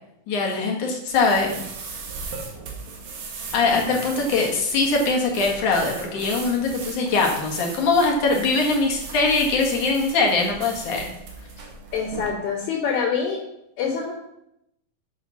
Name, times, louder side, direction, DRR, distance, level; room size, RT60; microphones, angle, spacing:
voice 1, 0.3-1.7 3.5-11.1, left 3 dB, 60° left, 0 dB, 2.9 m, -22 dB
sound 1, 1.1-12.3, right 4 dB, 80° right, 3.6 m, -38 dB
voice 2, 11.9-13.4 13.8-14.1, left 6 dB, 85° left, -9 dB, 4.5 m, -25 dB
9.1 x 7.1 x 5.7 m, 0.82 s
omnidirectional pair, 4.3 m